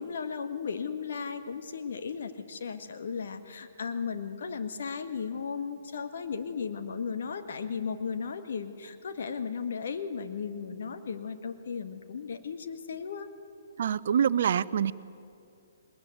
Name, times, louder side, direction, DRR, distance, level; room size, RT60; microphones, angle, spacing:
voice 1, 0.0-13.3, left 6 dB, 60° left, 8 dB, 1.7 m, -35 dB
voice 2, 13.8-14.9, right 8 dB, 55° right, 17 dB, 0.7 m, -25 dB
21.5 x 20.5 x 9.4 m, 2.7 s
figure-of-eight pair, 130°, 0 cm